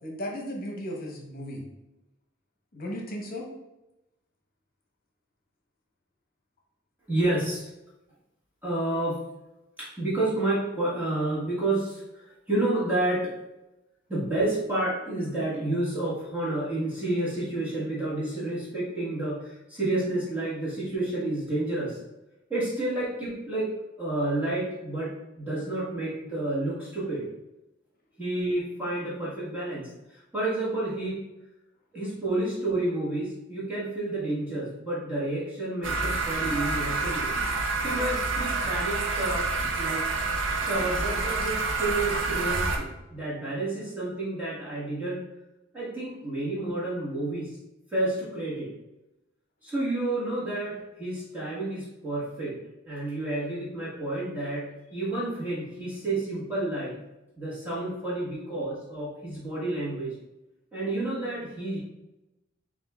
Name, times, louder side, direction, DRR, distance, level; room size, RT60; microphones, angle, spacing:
voice 1, 0.0-1.6 2.7-3.5 36.1-36.2, equal, 50° left, 0 dB, 0.9 m, -35 dB
voice 2, 7.1-7.7 8.6-9.2 9.8-13.3 14.1-22.0 22.5-23.7 24.0-27.3 28.2-31.2 31.9-37.3 37.8-39.5 39.8-40.0 40.5-45.2 45.7-47.6 47.9-48.7 49.6-52.6 52.9-57.0 57.4-60.2 60.7-61.8, right 2 dB, 10° right, -9 dB, 1.4 m, -30 dB
sound 1, 35.8-42.8, right 3 dB, 70° right, 0.6 m, -28 dB
7.3 x 2.5 x 2.3 m, 0.96 s
head